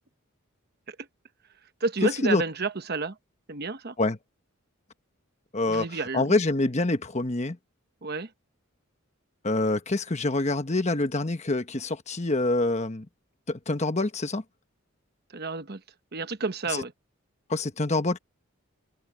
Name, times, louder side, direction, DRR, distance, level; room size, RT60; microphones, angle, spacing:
voice 1, 1.8-3.2 3.5-3.9 5.6-6.4 8.0-8.3 15.3-15.8 16.1-16.9, right 3 dB, 50° right, 1.1 m, -31 dB
voice 2, 5.5-5.9 6.1-7.6 9.4-13.1 13.5-14.4 16.7-16.8 17.5-18.2, left 2 dB, 30° left, 1.2 m, -26 dB
head